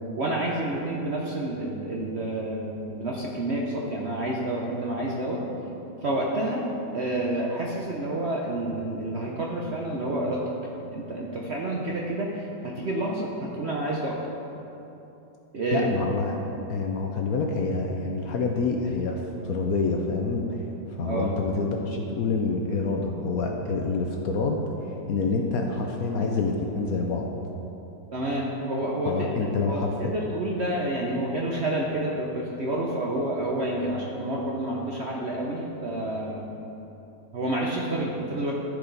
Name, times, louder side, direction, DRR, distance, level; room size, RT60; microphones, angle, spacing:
voice 1, 0.2-5.4 6.0-6.7 6.9-10.4 10.9-14.2 15.5-15.9 21.0-21.3 28.1-36.5 37.3-38.5, right 1 dB, 55° right, -3 dB, 0.7 m, -29 dB
voice 2, 15.7-16.4 16.7-20.6 21.0-24.6 25.1-27.3 29.0-29.9, left 4 dB, 65° left, 1 dB, 0.9 m, -27 dB
13.5 x 5.0 x 3.9 m, 3.0 s
omnidirectional pair, 2.0 m